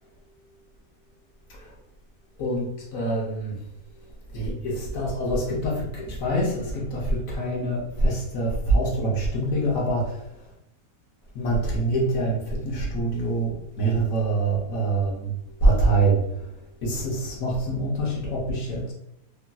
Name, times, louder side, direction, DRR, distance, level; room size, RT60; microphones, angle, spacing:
voice 1, 2.4-3.6 4.3-10.2 11.3-15.4 15.6-16.5 16.8-18.9, right 2 dB, 65° left, -3 dB, 1.0 m, -25 dB
3.1 x 2.5 x 2.2 m, 0.81 s
omnidirectional pair, 1.7 m